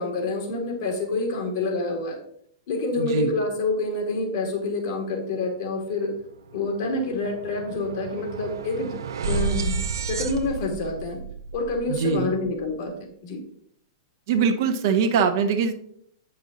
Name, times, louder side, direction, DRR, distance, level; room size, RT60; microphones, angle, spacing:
voice 1, 0.0-2.2 2.7-6.1 6.5-9.8 10.1-11.2 11.5-12.9 13.2-13.4, left 2 dB, 60° left, 3 dB, 2.2 m, -27 dB
voice 2, 3.0-3.3 11.9-12.3 14.3-15.7, right 6 dB, 60° right, 6 dB, 0.9 m, -22 dB
sound 1, 6.1-6.2 6.5-12.8, right 5 dB, 75° right, 0.6 m, -32 dB
8.2 x 5.5 x 3.9 m, 0.66 s
hypercardioid pair, 110°, 2 cm